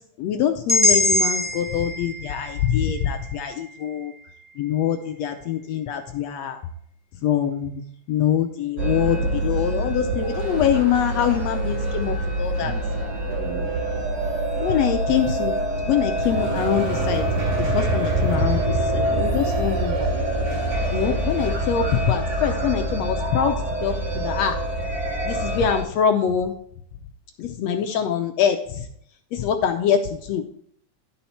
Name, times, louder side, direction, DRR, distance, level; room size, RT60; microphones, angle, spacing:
voice 1, 0.2-4.1 4.6-6.6 7.2-7.8 8.1-12.7 14.6-15.6 15.8-17.3 17.6-20.1 20.9-23.5 23.8-24.6 25.2-26.5 27.4-28.9 29.3-30.4, left 8 dB, 70° left, 6 dB, 1.7 m, -24 dB
sound 1, 0.7-4.7, left 2 dB, 55° right, 0.4 m, -24 dB
sound 2, 8.8-25.8, right 1 dB, 80° right, 4.2 m, -25 dB
11.5 x 5.7 x 4.3 m, 0.64 s
omnidirectional pair, 3.5 m